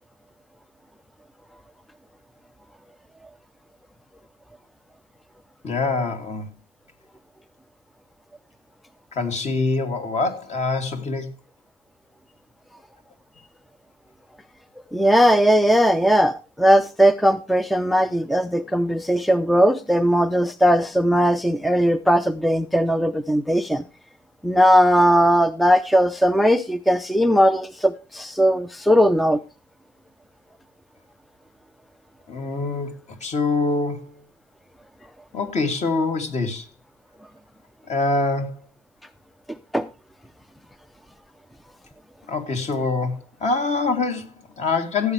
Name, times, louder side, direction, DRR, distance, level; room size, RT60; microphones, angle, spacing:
voice 1, 5.6-6.5 9.1-11.3 32.3-34.2 35.3-36.7 37.9-38.7 42.3-45.1, left 3 dB, 40° left, 2.9 m, -25 dB
voice 2, 14.9-23.8 24.4-29.4 39.7-39.9, equal, ahead, 0.6 m, -18 dB
16.0 x 9.0 x 3.3 m
cardioid pair, 110°, 17 cm